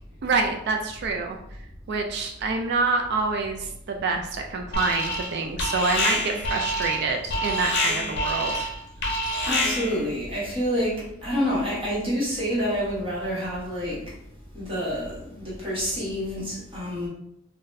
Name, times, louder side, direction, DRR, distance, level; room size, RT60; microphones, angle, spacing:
voice 1, 0.2-1.4 1.9-8.7, right 3 dB, 55° right, 3 dB, 0.3 m, -27 dB
Alarm, 4.7-5.3 5.6-10.0, left 1 dB, 55° left, 0.7 m, -27 dB
voice 2, 9.4-14.0 14.5-17.1, equal, 25° right, -7 dB, 1.0 m, -28 dB
3.9 x 2.1 x 2.6 m, 0.75 s
head